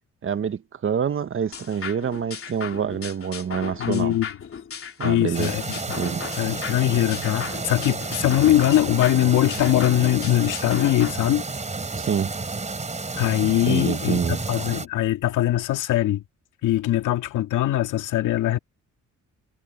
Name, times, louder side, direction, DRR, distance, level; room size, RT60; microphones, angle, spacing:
voice 1, 0.2-4.2 5.0-5.5 6.0-6.2 11.9-12.3 13.7-14.4, right 7 dB, 45° right, 1.4 m, -26 dB
sound 1, 1.5-11.1, left 6 dB, 45° left, 3.1 m, -36 dB
voice 2, 3.8-4.3 5.0-6.0 6.4-11.4 13.1-16.2 16.6-18.6, left 13 dB, 85° left, 2.2 m, -22 dB
sound 2, 5.3-14.9, right 3 dB, 25° right, 3.7 m, -31 dB
cardioid pair, 90°, 30 cm